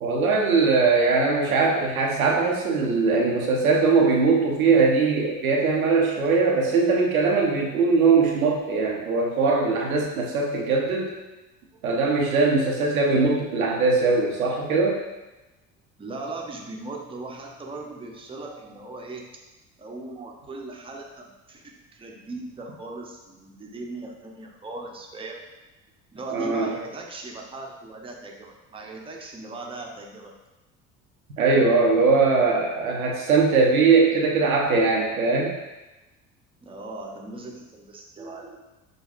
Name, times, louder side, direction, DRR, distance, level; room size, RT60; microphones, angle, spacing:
voice 1, 0.0-11.1 11.8-15.0 26.3-26.7 31.4-35.6, right 4 dB, 90° right, -2 dB, 0.6 m, -21 dB
voice 2, 16.0-19.3 19.8-25.4 26.1-30.3 36.6-38.6, right 2 dB, 15° right, 0 dB, 0.6 m, -38 dB
6.2 x 2.3 x 2.4 m, 1.1 s
hypercardioid pair, 55°, 41 cm